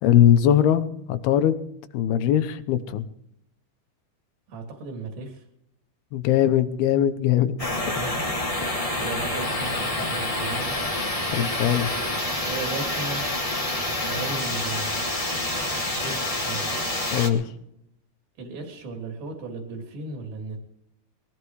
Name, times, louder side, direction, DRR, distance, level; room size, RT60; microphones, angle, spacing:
voice 1, 0.0-1.6 1.9-3.0 6.1-7.5 8.6-8.7 11.3-11.9 17.1-17.4, left 10 dB, 80° left, 11 dB, 2.9 m, -20 dB
voice 2, 4.5-5.4 7.9-8.1 8.9-11.1 12.5-13.3 13.9-15.3 15.8-16.8 18.4-20.6, right 3 dB, 70° right, 2 dB, 4.5 m, -36 dB
sound 1, 7.6-17.3, left 1 dB, 30° left, 0.6 m, -27 dB
22.5 x 16.0 x 3.2 m, 0.77 s
omnidirectional pair, 4.5 m